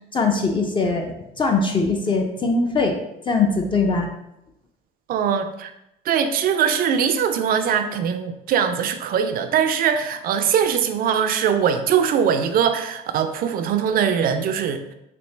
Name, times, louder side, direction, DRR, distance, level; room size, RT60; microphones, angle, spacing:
voice 1, 0.1-2.9 3.3-4.1, left 3 dB, 30° left, 3 dB, 0.5 m, -21 dB
voice 2, 5.1-5.7 6.0-14.9, right 8 dB, 60° right, 8 dB, 0.5 m, -21 dB
4.2 x 2.8 x 3.2 m, 0.84 s
cardioid pair, 110°, 17 cm